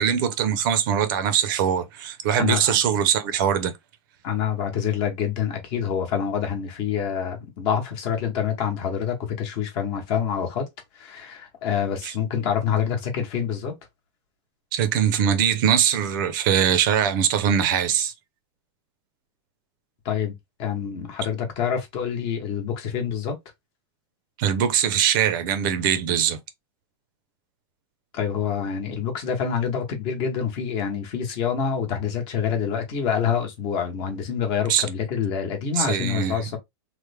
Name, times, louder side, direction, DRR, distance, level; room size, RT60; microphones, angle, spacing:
voice 1, 0.0-3.7 12.0-12.1 14.7-18.1 24.4-26.4 34.7-34.8 35.8-36.4, right 9 dB, 50° right, 0.5 m, -22 dB
voice 2, 2.4-2.8 4.2-10.7 10.9-13.7 20.0-20.3 20.6-23.4 28.1-36.6, left 7 dB, 35° left, 0.9 m, -26 dB
3.2 x 2.0 x 3.3 m
supercardioid pair, 165°, 14 cm